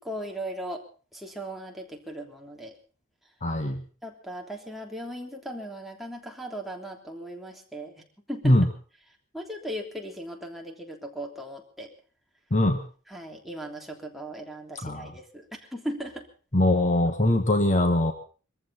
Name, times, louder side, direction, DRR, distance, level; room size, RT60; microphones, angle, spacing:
voice 1, 0.0-0.8 1.1-2.7 4.0-8.0 8.3-8.6 9.3-11.9 13.1-16.3, right 1 dB, ahead, 0 dB, 3.2 m, -37 dB
voice 2, 3.4-3.8 8.4-8.7 12.5-12.8 14.8-15.1 16.5-18.1, left 1 dB, 35° left, 7 dB, 1.5 m, -22 dB
23.5 x 14.5 x 4.2 m, 0.39 s
head